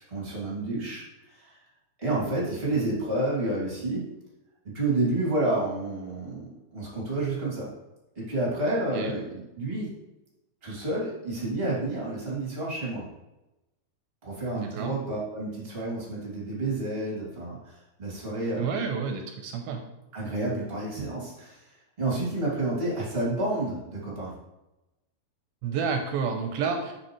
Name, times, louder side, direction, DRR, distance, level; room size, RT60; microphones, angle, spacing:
voice 1, 0.1-1.5 2.0-4.0 4.6-7.7 8.1-9.9 10.6-13.0 14.2-18.7 20.1-21.6 22.0-24.3, right 2 dB, 20° right, -5 dB, 2.0 m, -30 dB
voice 2, 14.6-14.9 18.5-19.8 25.6-26.9, right 6 dB, 80° right, 4 dB, 2.3 m, -30 dB
7.1 x 7.1 x 3.2 m, 0.96 s
omnidirectional pair, 4.8 m